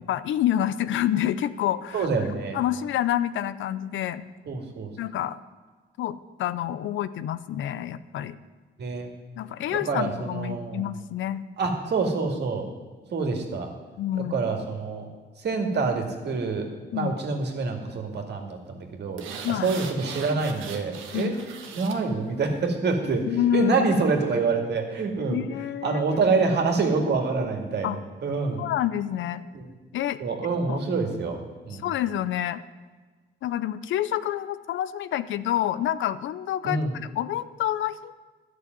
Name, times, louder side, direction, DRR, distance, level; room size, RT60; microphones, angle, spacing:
voice 1, 0.1-2.1 2.5-4.2 5.0-5.4 6.0-8.4 9.4-11.4 14.0-14.4 16.9-17.1 19.4-19.7 21.1-21.4 23.2-23.9 25.3-26.2 27.8-28.0 28.6-29.4 29.9-30.2 30.7-30.8 31.7-32.6 33.4-38.2, left 11 dB, 75° left, 14 dB, 0.6 m, -28 dB
voice 2, 1.9-2.6 4.5-4.9 8.8-9.1 9.7-10.8 11.6-12.7 13.1-13.7 14.3-15.1 15.4-19.2 19.5-21.3 21.8-23.3 23.5-25.4 25.8-28.0 28.2-28.6 29.5-29.6 30.2-31.9 36.6-36.9, right 4 dB, 60° right, 3 dB, 2.2 m, -26 dB
sound 1, 19.2-22.0 22.4-22.5, right 6 dB, 90° right, 1.3 m, -39 dB
12.0 x 6.4 x 9.3 m, 1.4 s
cardioid pair, 90°, 20 cm